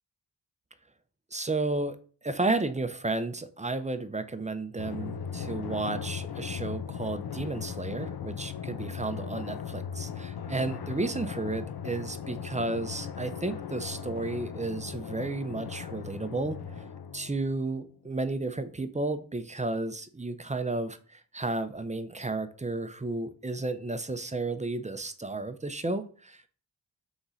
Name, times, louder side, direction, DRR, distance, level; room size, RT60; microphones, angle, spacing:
voice 1, 1.3-2.0 2.2-16.6 17.1-26.5, right 2 dB, 15° right, 10 dB, 0.5 m, -32 dB
Drum, 4.8-17.9, left 7 dB, 55° left, 0.5 m, -38 dB
3.8 x 3.0 x 3.9 m, 0.41 s
cardioid pair, 45°, 45 cm